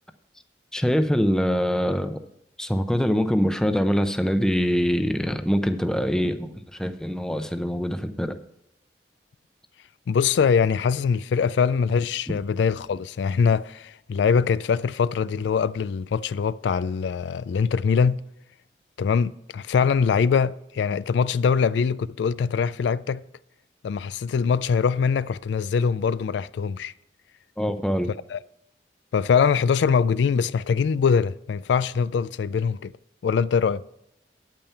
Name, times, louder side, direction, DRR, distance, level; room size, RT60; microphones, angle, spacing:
voice 1, 0.7-2.2 2.6-6.5 6.8-8.3 27.6-28.1, equal, 5° left, 0.6 m, -23 dB
voice 2, 10.1-18.2 19.0-23.2 23.8-26.9 28.3-28.4 29.1-32.9 33.2-33.8, left 6 dB, 80° left, 0.3 m, -23 dB
8.9 x 8.6 x 5.7 m
head